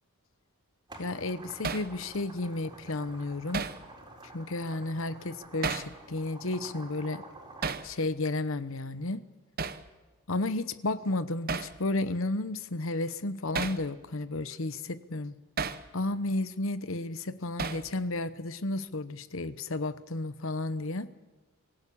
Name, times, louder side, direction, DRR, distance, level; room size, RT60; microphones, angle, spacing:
sound 1, 0.9-7.7, right 2 dB, 20° right, 4.4 m, -49 dB
voice 1, 1.0-3.7 4.3-7.2 7.8-9.2 10.3-15.3 15.9-21.1, left 2 dB, 65° left, 14 dB, 1.0 m, -32 dB
Hammer, 1.6-1.9 3.5-3.8 5.6-5.9 7.6-7.9 9.6-9.8 11.5-11.7 13.5-13.8 15.6-15.8 17.6-17.9, right 5 dB, 45° right, 1.0 m, -32 dB
24.5 x 17.0 x 8.6 m, 1.3 s
head